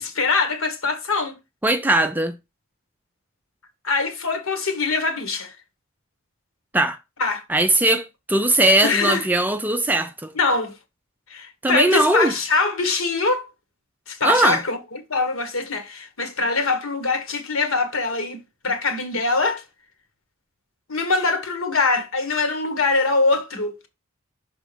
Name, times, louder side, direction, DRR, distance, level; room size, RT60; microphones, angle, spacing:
voice 1, 0.0-1.3 3.8-5.5 7.2-7.4 8.8-9.3 10.3-10.8 11.3-13.5 14.1-19.6 20.9-23.9, left 3 dB, 65° left, 1.4 m, -23 dB
voice 2, 1.6-2.3 6.7-7.0 7.5-10.3 11.6-12.3 14.2-14.6, right 2 dB, 10° right, 0.4 m, -19 dB
6.3 x 3.7 x 5.0 m
head